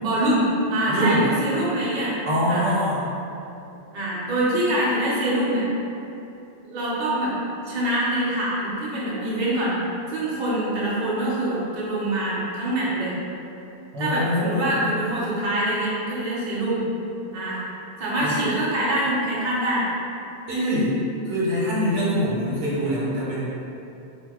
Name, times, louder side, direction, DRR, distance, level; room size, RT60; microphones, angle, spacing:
voice 1, 0.0-2.2 2.5-2.6 3.9-5.6 6.7-7.3 7.7-9.8 10.1-13.1 14.0-16.8 17.3-17.6 18.0-19.9, right 1 dB, 55° right, -7 dB, 0.7 m, -24 dB
voice 2, 0.9-1.3 2.3-3.0 13.9-14.7 18.2-18.4 20.5-21.0 21.2-23.5, equal, 90° right, -7 dB, 1.1 m, -24 dB
2.6 x 2.1 x 3.4 m, 2.8 s
omnidirectional pair, 1.2 m